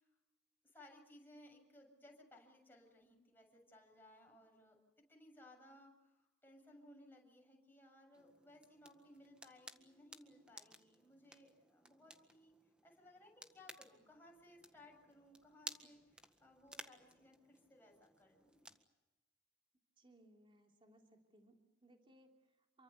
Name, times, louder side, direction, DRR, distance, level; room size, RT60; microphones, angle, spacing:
voice 1, 0.6-4.8 5.1-12.5 12.8-16.0 16.4-18.6, left 1 dB, 10° left, 1 dB, 7.4 m, -62 dB
sound 1, 8.1-18.9, right 1 dB, 5° right, 1.8 m, -57 dB
voice 2, 20.0-22.8, right 1 dB, 30° right, 2 dB, 3.2 m, -67 dB
28.5 x 24.0 x 7.0 m, 1.1 s
head